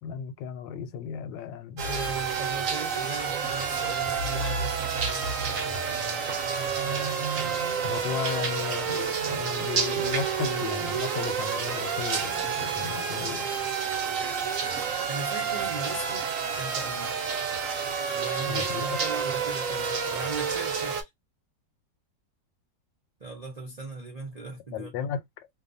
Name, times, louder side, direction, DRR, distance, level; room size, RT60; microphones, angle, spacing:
voice 1, 0.0-1.9 7.8-13.5 18.5-19.0 24.7-25.2, left 8 dB, 85° left, 1.3 m, -35 dB
sound 1, 1.8-21.0, right 6 dB, 60° right, 1.0 m, -29 dB
voice 2, 1.8-6.3 6.7-7.6 15.1-17.1 18.1-21.1 23.2-25.1, right 3 dB, 90° right, 0.3 m, -39 dB
2.8 x 2.2 x 2.5 m
omnidirectional pair, 1.9 m